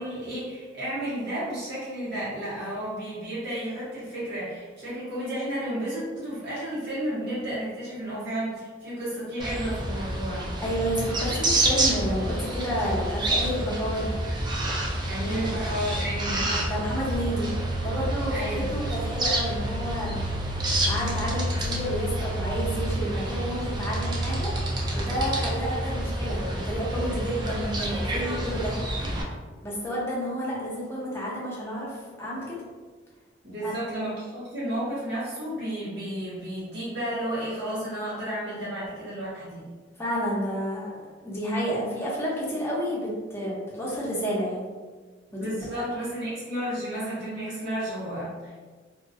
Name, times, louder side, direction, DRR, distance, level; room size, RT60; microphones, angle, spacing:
voice 1, 0.0-10.5 15.1-16.6 18.3-18.7 33.4-39.7 45.3-48.5, right 1 dB, 60° right, -10 dB, 1.0 m, -32 dB
sound 1, 9.4-29.2, right 1 dB, 25° right, 0.3 m, -28 dB
voice 2, 10.6-14.2 15.3-15.5 16.5-17.5 17.8-20.3 20.7-24.5 24.9-28.8 29.6-32.6 33.6-33.7 40.0-44.6 45.3-45.9, equal, 15° left, -6 dB, 0.6 m, -30 dB
2.2 x 2.2 x 2.6 m, 1.4 s
head